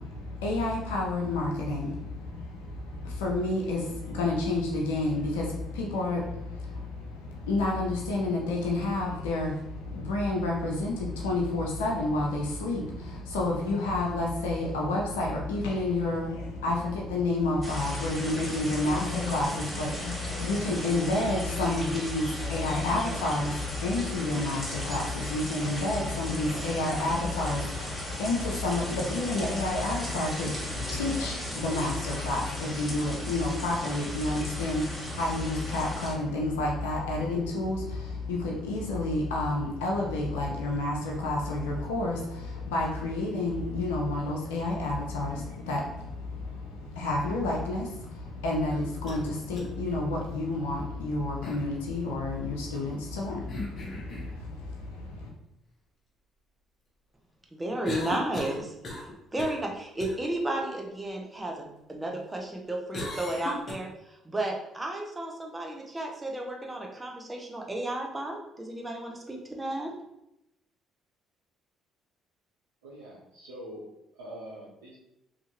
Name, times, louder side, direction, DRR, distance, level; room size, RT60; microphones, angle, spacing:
voice 1, 0.0-55.3, left 2 dB, 85° left, -1 dB, 0.5 m, -30 dB
sound 1, 17.6-36.1, equal, 10° left, 1.2 m, -37 dB
sound 2, 48.7-49.2 49.6-49.7 51.4-51.7 53.5-54.4 57.9-59.1 59.4-59.7 60.0-60.2 62.9-63.7, left 2 dB, 50° left, 0.8 m, -37 dB
voice 2, 57.5-59.1 59.3-69.9, right 1 dB, 20° right, 1 dB, 0.7 m, -33 dB
voice 3, 72.8-73.8 74.1-75.0, equal, 85° right, -7 dB, 0.6 m, -44 dB
2.7 x 2.5 x 2.9 m, 0.85 s
hypercardioid pair, 55°, 0 cm